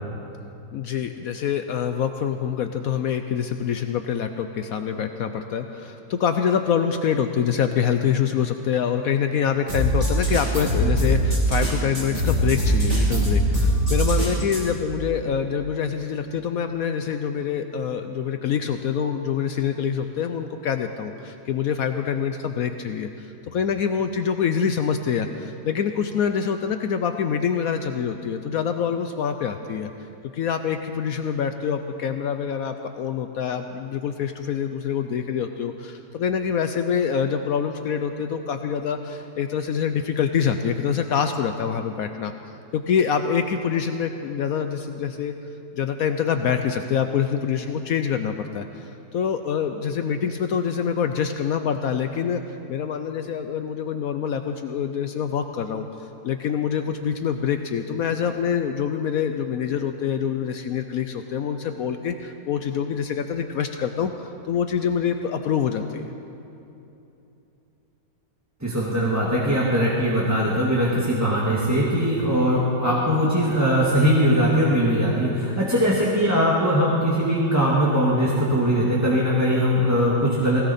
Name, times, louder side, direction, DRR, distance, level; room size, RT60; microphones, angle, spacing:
voice 1, 0.7-29.9 30.3-42.3 42.7-45.3 45.7-66.1, left 7 dB, 65° left, 7 dB, 0.9 m, -25 dB
sound 1, 9.7-14.6, right 1 dB, 25° right, 4.7 m, -22 dB
voice 2, 68.6-80.6, equal, 10° right, -6 dB, 1.7 m, -21 dB
19.5 x 17.0 x 4.2 m, 2.9 s
omnidirectional pair, 1.9 m